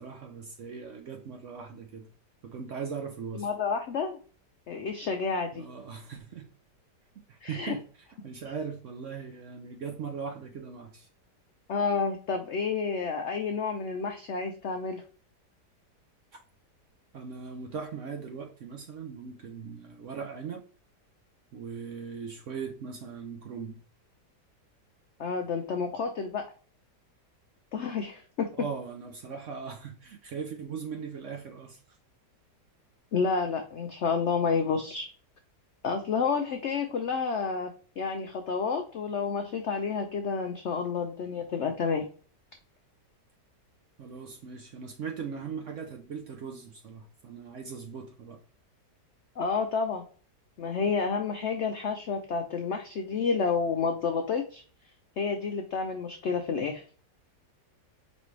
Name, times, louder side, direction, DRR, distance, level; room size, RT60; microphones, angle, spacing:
voice 1, 0.0-2.1 2.4-3.5 5.5-6.4 7.3-7.8 8.2-11.1 17.1-20.6 21.5-23.8 28.6-31.8 44.0-48.4, right 6 dB, 65° right, 0.8 m, -39 dB
voice 2, 3.3-4.2 4.7-5.6 7.4-7.7 11.7-15.0 25.2-26.4 27.7-28.5 33.1-35.1 35.8-37.7 38.0-42.1 49.4-50.0 50.6-54.6 55.2-56.8, left 5 dB, 75° left, 0.6 m, -30 dB
5.1 x 3.2 x 3.1 m
omnidirectional pair, 1.8 m